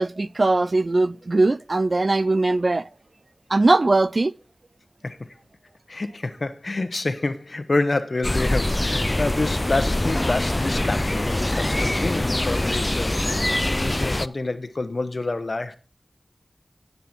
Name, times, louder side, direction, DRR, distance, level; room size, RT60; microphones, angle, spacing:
voice 1, 0.0-2.8 3.5-4.3, right 2 dB, 60° right, 0.4 m, -20 dB
voice 2, 5.9-13.5 13.8-15.8, left 2 dB, 60° left, 1.1 m, -27 dB
sound 1, 8.2-14.3, left 1 dB, 30° left, 0.4 m, -24 dB
10.0 x 8.0 x 4.5 m
wide cardioid pair, 40°, 0 cm